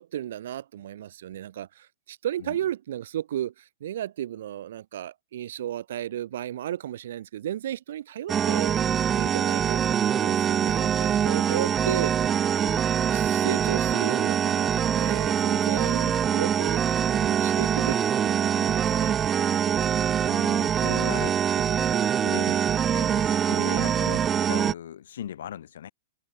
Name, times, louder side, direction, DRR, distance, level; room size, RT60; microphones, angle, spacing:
voice 1, 0.0-8.8 9.1-12.3 13.1-16.8 17.1-19.1 22.4-22.6 23.5-24.0, right 11 dB, 65° right, 0.7 m, -34 dB
sound 1, 8.3-24.7, right 8 dB, 15° right, 0.3 m, -24 dB
voice 2, 20.2-25.9, left 10 dB, 70° left, 3.7 m, -39 dB
hypercardioid pair, 160°, 0 cm